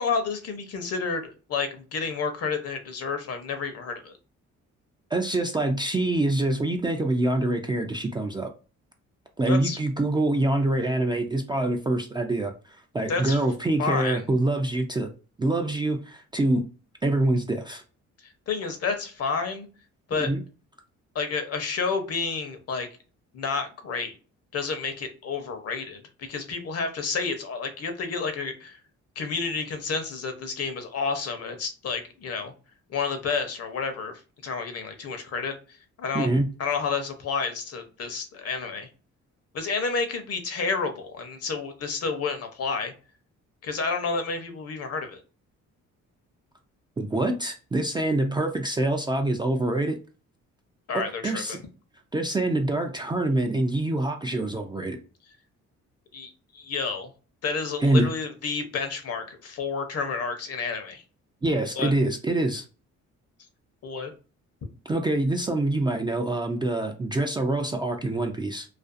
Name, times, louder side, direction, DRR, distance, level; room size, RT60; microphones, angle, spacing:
voice 1, 0.0-4.2 9.5-9.8 13.1-13.4 13.8-14.2 18.5-19.7 20.1-20.3 21.1-22.9 23.3-24.2 24.5-28.8 29.2-32.5 32.9-35.5 36.0-36.3 36.6-38.9 39.5-42.9 43.6-45.2 50.9-51.6 56.1-57.1 57.4-61.0 61.8-61.9 63.8-64.1, left 5 dB, 55° left, 7 dB, 0.7 m, -30 dB
voice 2, 5.1-8.5 9.4-12.5 12.9-15.1 15.4-16.6 17.0-17.8 20.2-20.4 36.1-36.5 47.0-50.0 50.9-51.6 52.1-55.0 57.8-58.1 61.4-62.6 64.9-68.7, right 2 dB, 15° right, 3 dB, 0.3 m, -25 dB
2.5 x 2.3 x 2.4 m, 0.35 s
cardioid pair, 90°, 30 cm